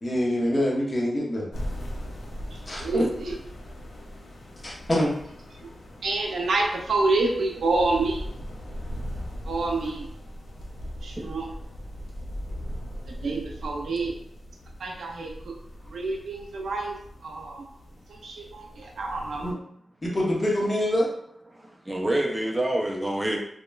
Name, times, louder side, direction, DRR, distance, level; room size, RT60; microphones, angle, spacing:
voice 1, 0.0-1.5 2.7-3.0 4.6-5.1 19.4-19.6 20.0-21.1, left 1 dB, 30° left, -3 dB, 0.8 m, -25 dB
sound 1, 1.5-19.5, equal, 85° left, 0.5 m, -39 dB
voice 2, 2.5-3.4 6.0-8.2 9.5-10.0 11.0-11.5 13.2-14.1 14.8-15.5 15.9-17.6 18.1-19.5, right 3 dB, 85° right, 0 dB, 0.5 m, -28 dB
voice 3, 21.5-23.4, right 1 dB, 10° right, 0 dB, 0.5 m, -27 dB
2.9 x 2.1 x 2.2 m, 0.70 s
wide cardioid pair, 85°, 0 cm